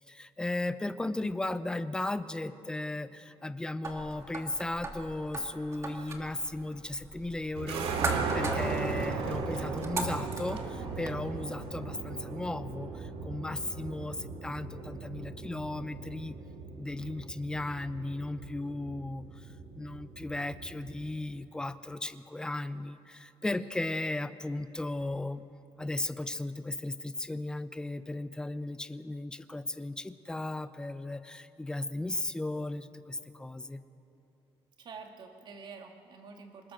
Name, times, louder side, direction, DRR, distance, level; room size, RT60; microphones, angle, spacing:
voice 1, 0.1-7.9 8.3-16.4 16.8-19.5 19.7-25.4 25.8-33.8, left 2 dB, 10° left, 12 dB, 0.6 m, -36 dB
sound 1, 3.8-11.2, right 2 dB, 30° right, 2.3 m, -39 dB
sound 2, 7.6-21.1, right 4 dB, 80° right, 2.3 m, -37 dB
voice 2, 34.8-36.7, right 4 dB, 50° right, 3 dB, 2.2 m, -47 dB
27.0 x 20.5 x 6.4 m, 2.8 s
cardioid pair, 150°, 10 cm